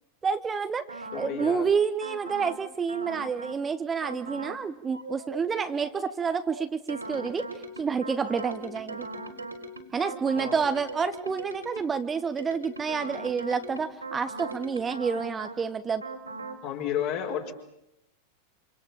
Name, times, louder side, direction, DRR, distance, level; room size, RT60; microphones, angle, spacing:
voice 1, 0.2-7.4 7.8-9.1 9.9-16.0, right 6 dB, 20° right, 10 dB, 1.2 m, -29 dB
sound 1, 0.9-1.6 2.0-2.6 2.9-3.6 4.0-4.6 4.9-12.0 12.4-15.6 16.0-16.6, right 2 dB, 85° right, 4.4 m, -40 dB
voice 2, 1.1-1.7 10.4-10.6 16.6-17.5, left 9 dB, 45° left, 2 dB, 5.1 m, -31 dB
28.5 x 27.5 x 7.4 m, 0.84 s
figure-of-eight pair, 90°, 0 cm